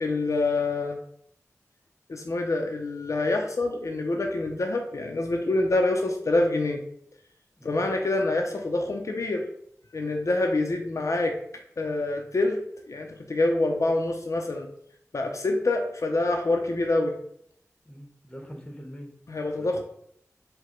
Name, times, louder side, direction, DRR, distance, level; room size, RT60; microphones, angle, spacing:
voice 1, 0.0-1.0 2.1-6.8 7.6-9.5 9.9-11.4 11.8-12.6 12.9-14.7 15.1-17.2 19.3-19.8, left 2 dB, 65° left, 2 dB, 0.5 m, -26 dB
voice 2, 17.9-19.1 19.5-19.8, equal, 15° left, 2 dB, 0.9 m, -43 dB
4.8 x 2.2 x 4.3 m, 0.67 s
wide cardioid pair, 60°, 6 cm